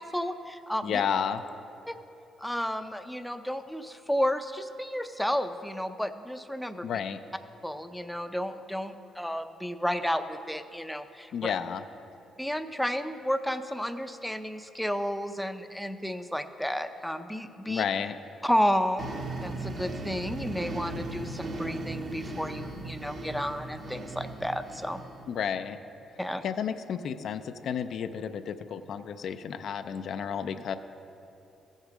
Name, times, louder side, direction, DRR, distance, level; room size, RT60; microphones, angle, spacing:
voice 1, 0.0-1.0 1.9-2.0 2.4-6.9 7.6-11.5 12.4-17.8 18.4-25.0 26.2-26.4, equal, 5° left, 8 dB, 0.5 m, -32 dB
voice 2, 0.8-1.4 6.8-7.2 11.3-11.8 17.7-18.2 25.3-25.8 26.4-30.8, left 7 dB, 65° left, 9 dB, 0.4 m, -31 dB
sound 1, 19.0-25.4, right 2 dB, 50° right, 1.0 m, -37 dB
14.5 x 6.5 x 4.9 m, 2.9 s
cardioid pair, 90°, 0 cm